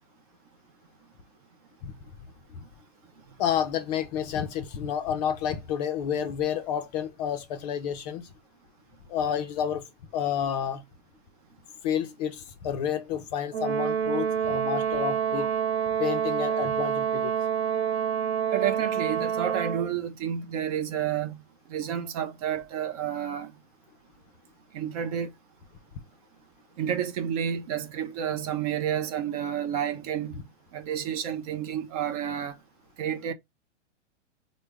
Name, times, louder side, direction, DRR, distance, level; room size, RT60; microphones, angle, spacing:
voice 1, 3.4-8.3 9.1-9.8 10.1-10.8 11.8-15.5 16.0-17.3, left 9 dB, 35° left, 0.4 m, -30 dB
Brass instrument, 13.5-19.9, right 8 dB, 60° right, 1.0 m, -27 dB
voice 2, 18.5-21.4 21.7-23.5 24.7-25.3 26.8-30.4 30.7-32.6 33.0-33.3, right 9 dB, 35° right, 0.4 m, -30 dB
3.4 x 2.0 x 3.3 m
hypercardioid pair, 140°, 36 cm